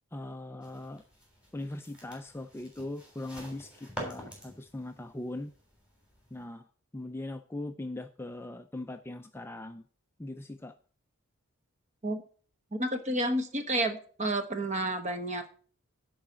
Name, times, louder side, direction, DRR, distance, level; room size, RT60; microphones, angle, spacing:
voice 1, 0.1-1.0 1.5-5.5 6.3-6.6 6.9-9.8 10.2-10.7, left 2 dB, 10° left, 7 dB, 0.4 m, -40 dB
sound 1, 0.6-6.4, right 1 dB, 5° right, 3.4 m, -47 dB
voice 2, 12.8-15.5, right 1 dB, 30° right, 8 dB, 1.1 m, -30 dB
10.5 x 4.8 x 7.4 m, 0.43 s
head